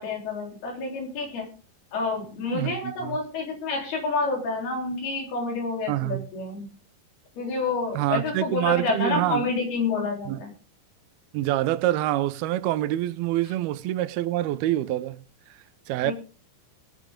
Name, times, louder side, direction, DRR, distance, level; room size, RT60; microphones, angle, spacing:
voice 1, 0.0-1.5 1.9-6.7 7.4-10.5 16.0-16.1, left 3 dB, 90° left, 5.6 m, -28 dB
voice 2, 2.5-3.2 5.9-6.3 8.0-9.4 10.3-10.4 11.3-15.2 15.9-16.1, right 14 dB, 90° right, 2.7 m, -26 dB
18.5 x 8.6 x 3.7 m
omnidirectional pair, 4.3 m